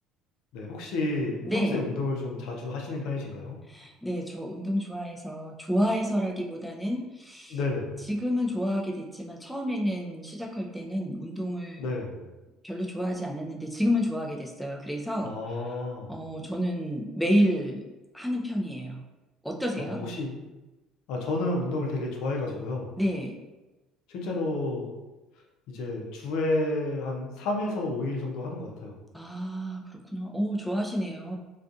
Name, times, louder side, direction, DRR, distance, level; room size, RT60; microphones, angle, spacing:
voice 1, 0.5-3.6 7.5-7.9 11.8-12.2 15.2-16.2 19.8-20.4 21.1-22.9 24.1-24.9 25.7-29.0, left 2 dB, 75° left, 0 dB, 0.5 m, -31 dB
voice 2, 1.4-1.8 3.7-7.6 8.1-11.8 12.6-15.8 16.1-17.8 18.1-19.0 19.4-20.0 23.0-23.4 29.1-31.4, equal, ahead, 0 dB, 0.4 m, -30 dB
2.5 x 2.3 x 2.4 m, 1.1 s
supercardioid pair, 85°, 0 cm